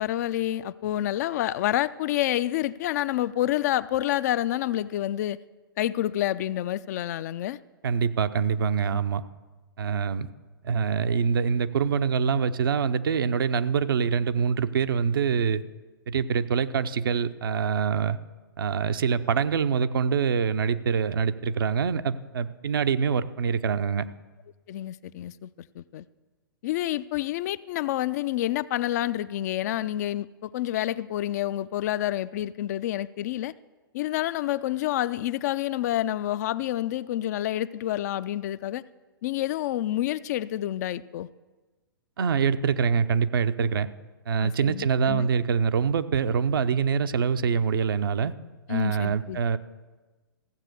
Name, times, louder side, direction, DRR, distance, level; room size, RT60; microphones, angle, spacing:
voice 1, 0.0-5.4 5.8-7.6 8.9-9.0 24.7-25.5 25.8-26.0 26.6-33.5 33.9-38.8 39.2-41.3 44.4-45.3 48.7-49.4, left 13 dB, 45° left, 0.4 m, -28 dB
voice 2, 7.8-9.2 9.8-10.3 10.6-15.6 16.1-18.2 18.6-24.0 42.2-43.9 44.3-48.3 48.7-49.6, right 6 dB, 70° right, 0.7 m, -25 dB
15.0 x 7.4 x 6.7 m
hypercardioid pair, 120°, 12 cm